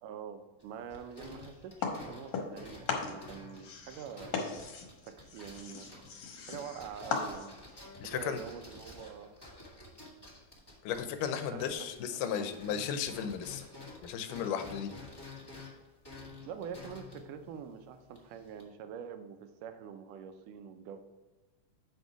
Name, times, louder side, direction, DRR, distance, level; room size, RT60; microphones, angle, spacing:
voice 1, 0.0-4.6 5.0-5.9 6.5-7.6 8.0-9.4 11.5-12.5 16.5-21.0, right 7 dB, 80° right, 8 dB, 2.2 m, -45 dB
sound 1, 0.6-12.2 12.5-18.6, left 2 dB, 20° left, 0.6 m, -51 dB
sound 2, 1.8-2.6 2.9-7.7, left 5 dB, 65° left, 2.2 m, -38 dB
voice 2, 8.0-8.4 10.8-13.7 14.0-14.9, left 8 dB, 80° left, 8 dB, 2.2 m, -35 dB
8.1 x 5.3 x 4.7 m, 1.2 s
omnidirectional pair, 3.8 m